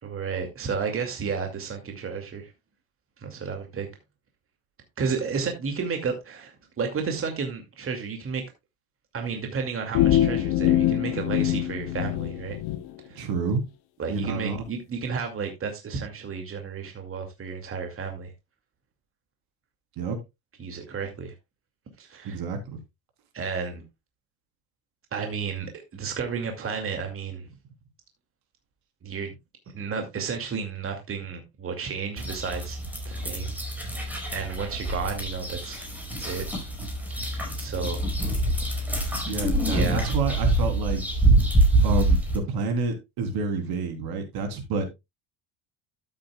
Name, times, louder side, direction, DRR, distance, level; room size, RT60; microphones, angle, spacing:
voice 1, 0.0-2.5 3.2-3.9 5.0-8.4 9.1-12.6 13.1-13.2 14.0-18.3 20.6-21.3 22.0-22.4 23.3-23.8 25.1-27.5 29.0-29.3 29.7-32.8 33.0-35.8 36.2-36.4 37.2-37.3 37.6-38.0 39.7-40.1, right 5 dB, 35° right, 2.4 m, -32 dB
sound 1, 9.9-12.8, left 12 dB, 65° left, 1.1 m, -23 dB
voice 2, 13.2-13.6 14.1-14.6 20.0-20.2 22.2-22.8 39.3-41.0 41.8-44.9, right 4 dB, 65° right, 3.6 m, -29 dB
sound 2, 32.2-42.4, right 2 dB, 5° right, 5.0 m, -25 dB
12.5 x 8.7 x 2.3 m
supercardioid pair, 100°, 40 cm